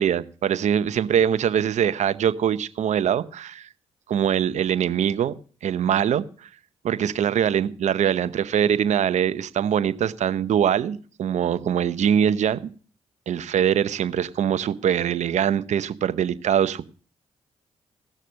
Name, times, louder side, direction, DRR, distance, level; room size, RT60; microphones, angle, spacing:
voice 1, 0.0-3.7 4.1-5.3 5.6-6.5 6.8-12.7 13.3-16.9, right 9 dB, 70° right, 0.8 m, -23 dB
17.0 x 6.6 x 6.3 m
supercardioid pair, 55°, 12 cm